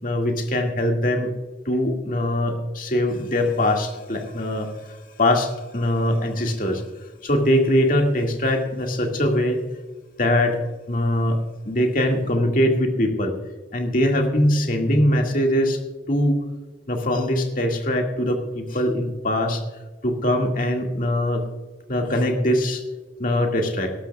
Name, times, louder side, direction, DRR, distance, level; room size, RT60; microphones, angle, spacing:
voice 1, 0.0-1.3 1.7-6.8 7.2-9.6 10.2-10.6 10.9-11.4 11.7-13.3 13.7-15.8 16.1-16.4 16.9-19.6 20.0-21.5 21.9-22.8 23.2-23.9, left 1 dB, 45° left, 2 dB, 2.0 m, -22 dB
19.0 x 13.0 x 2.3 m, 1.3 s
head